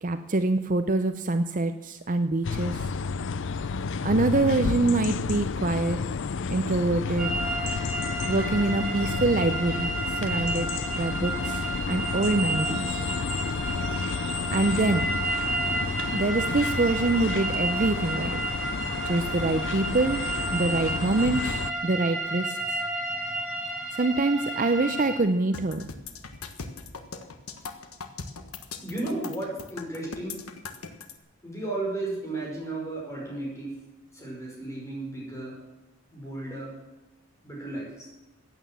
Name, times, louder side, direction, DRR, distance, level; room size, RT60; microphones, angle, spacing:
voice 1, 0.0-2.9 4.0-6.0 6.5-7.3 8.3-9.9 10.2-10.7 10.9-11.6 11.9-13.0 14.5-15.0 16.1-18.4 19.0-20.2 20.5-22.6 23.9-25.9, right 2 dB, 35° right, 9 dB, 0.6 m, -25 dB
sound 1, 2.4-21.7, left 5 dB, 55° left, 0.4 m, -31 dB
sound 2, 7.2-25.2, right 2 dB, 5° right, 3.4 m, -31 dB
sound 3, 25.5-31.1, left 4 dB, 75° left, 1.4 m, -39 dB
voice 2, 28.8-30.4 31.4-33.7 34.1-35.5 36.1-36.7 37.4-38.1, right 2 dB, 15° left, -2 dB, 5.2 m, -34 dB
15.0 x 9.4 x 7.5 m, 1.1 s
head